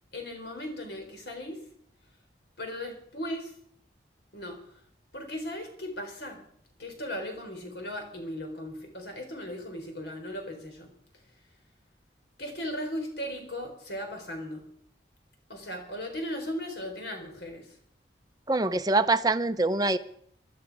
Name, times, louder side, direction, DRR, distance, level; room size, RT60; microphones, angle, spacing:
voice 1, 0.1-1.6 2.6-3.5 4.3-4.6 5.1-6.4 6.8-10.9 12.4-14.6 15.5-17.8, equal, 70° left, 4 dB, 3.9 m, -37 dB
voice 2, 18.5-20.0, right 2 dB, 20° right, 12 dB, 0.6 m, -24 dB
20.0 x 12.5 x 4.7 m, 0.66 s
head